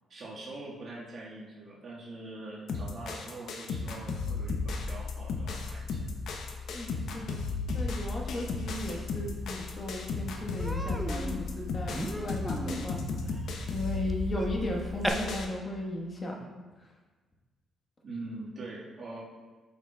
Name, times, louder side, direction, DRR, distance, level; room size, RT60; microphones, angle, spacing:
voice 1, 0.1-6.1 18.0-19.2, right 2 dB, 50° right, -6 dB, 1.7 m, -43 dB
sound 1, 2.7-15.5, left 3 dB, 70° left, 0.7 m, -35 dB
voice 2, 6.7-7.4 7.7-13.0 13.7-16.4, left 1 dB, 35° left, 0 dB, 1.3 m, -36 dB
Human voice, 9.6-9.7 10.0-10.2 10.6-15.1, equal, ahead, 0.6 m, -38 dB
7.8 x 5.9 x 2.3 m, 1.3 s
cardioid pair, 90°, 0 cm